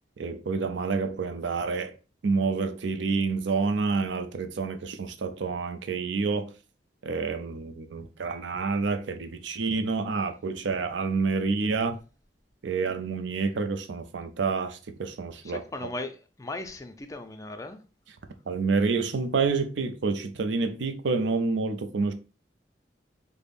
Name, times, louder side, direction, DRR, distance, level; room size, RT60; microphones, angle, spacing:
voice 1, 0.2-1.9 2.2-6.5 7.0-12.0 12.6-15.6 18.5-22.1, right 4 dB, 80° right, 0.5 m, -28 dB
voice 2, 15.4-16.1 16.4-17.8, left 2 dB, 20° left, 0.4 m, -37 dB
5.1 x 2.1 x 2.4 m
head